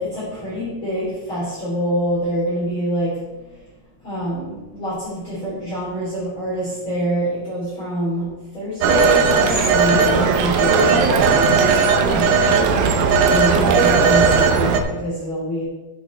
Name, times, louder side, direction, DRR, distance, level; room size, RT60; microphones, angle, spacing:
voice 1, 0.0-3.2 4.0-8.3 8.5-11.1 12.0-15.6, equal, 35° left, -10 dB, 3.5 m, -25 dB
Telephone, 8.8-14.8, right 5 dB, 75° right, 2.5 m, -16 dB
11.0 x 6.0 x 4.3 m, 1.1 s
omnidirectional pair, 4.6 m